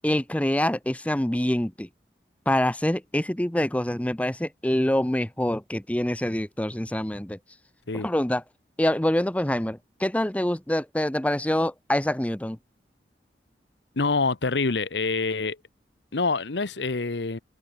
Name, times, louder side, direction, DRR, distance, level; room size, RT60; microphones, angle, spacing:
voice 1, 0.0-1.9 2.5-7.4 7.9-8.4 8.8-12.6, left 1 dB, 10° left, 0.7 m, -25 dB
voice 2, 14.0-15.6 16.1-17.4, left 3 dB, 80° left, 1.0 m, -26 dB
head